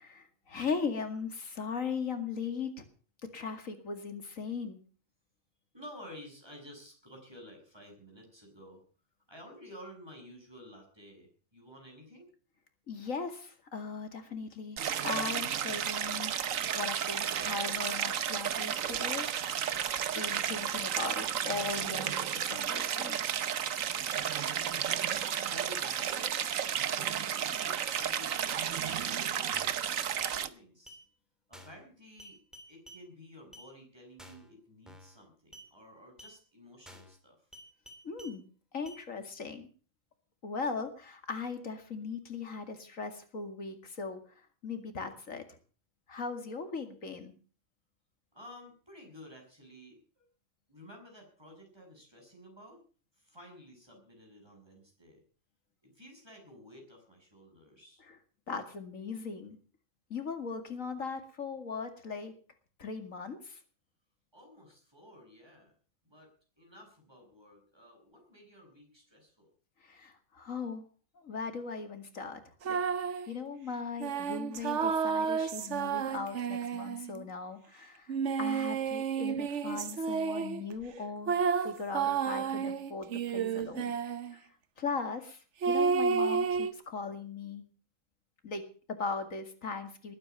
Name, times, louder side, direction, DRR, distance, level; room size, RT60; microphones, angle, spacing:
voice 1, 0.0-2.8 3.2-4.8 12.9-19.3 20.1-23.2 38.0-38.4 38.7-39.7 40.4-44.2 44.6-45.6 46.1-47.3 58.5-59.6 60.1-62.3 62.8-63.6 69.8-70.9 71.2-72.4 72.7-72.8 73.3-84.0 84.3-84.4 84.8-85.4 85.7-87.7 88.4-90.1, left 5 dB, 85° left, 7 dB, 2.6 m, -38 dB
voice 2, 5.7-8.8 9.3-12.3 23.6-26.4 26.6-31.0 31.5-32.4 32.7-37.4 48.3-50.3 50.7-52.8 53.2-55.2 55.8-58.0 64.3-65.7 66.1-69.5, equal, 20° right, 1 dB, 7.1 m, -53 dB
Stream, 14.8-30.5, right 9 dB, 85° right, 1.3 m, -32 dB
sound 1, 28.9-29.2 29.5-29.8 30.2-30.4 30.9-31.0 31.5-31.8 32.2-33.0 33.5-33.7 34.2-34.5 34.9-35.2 35.5-35.7 36.2-36.4 36.9-37.2 37.5-38.4 38.9-39.0, equal, ahead, 3.0 m, -52 dB
sound 2, 72.6-73.3 74.0-77.2 78.1-80.6 81.3-84.3 85.6-86.7, right 6 dB, 65° right, 1.2 m, -31 dB
20.5 x 9.3 x 7.1 m, 0.40 s
omnidirectional pair, 1.3 m